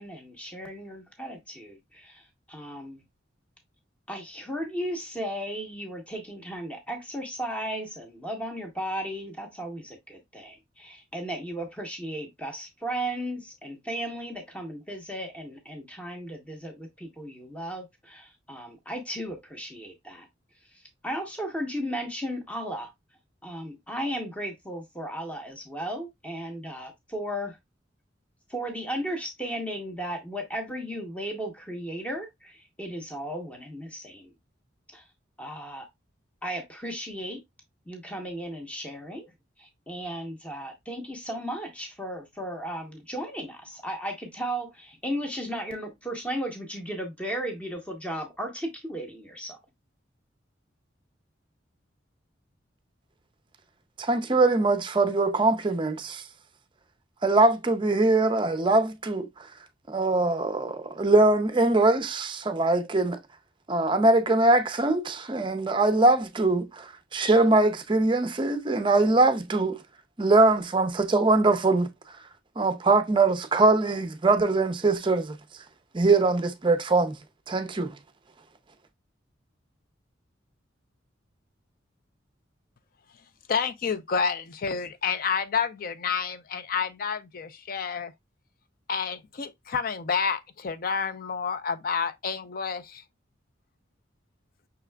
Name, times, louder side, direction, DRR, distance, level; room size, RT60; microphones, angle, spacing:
voice 1, 0.0-3.0 4.1-20.3 20.7-22.9 23.4-27.6 28.5-34.3 34.9-35.1 35.4-35.9 36.4-37.4 37.9-39.3 39.6-49.6, equal, 5° left, 0.8 m, -35 dB
voice 2, 54.0-56.2 57.2-59.3 59.9-63.2 63.7-69.8 70.2-71.9 72.6-75.4 75.9-77.1 77.5-77.9, right 2 dB, 25° right, 0.5 m, -22 dB
voice 3, 83.5-88.1 88.9-93.0, left 6 dB, 50° left, 0.4 m, -29 dB
5.6 x 3.6 x 2.2 m
head